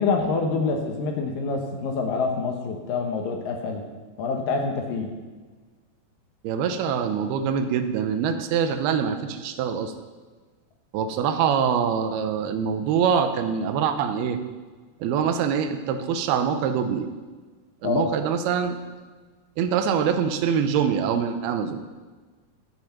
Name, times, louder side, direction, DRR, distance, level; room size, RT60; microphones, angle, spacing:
voice 1, 0.0-3.8 4.2-5.1 17.8-18.1, left 4 dB, 70° left, 3 dB, 2.6 m, -26 dB
voice 2, 6.4-9.9 10.9-14.4 15.0-17.1 17.8-18.8 19.6-21.8, right 7 dB, 85° right, 8 dB, 2.7 m, -24 dB
13.5 x 6.2 x 5.8 m, 1.4 s
omnidirectional pair, 4.5 m